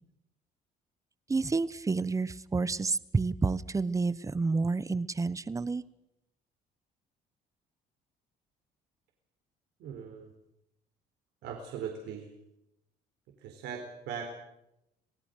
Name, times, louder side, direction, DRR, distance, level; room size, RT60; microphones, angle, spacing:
voice 1, 1.3-5.8, right 4 dB, 20° right, 17 dB, 1.0 m, -29 dB
voice 2, 9.8-10.3 11.4-12.3 13.4-14.3, right 7 dB, 85° right, 2 dB, 4.2 m, -39 dB
26.5 x 18.0 x 6.6 m, 0.84 s
cardioid pair, 110°, 17 cm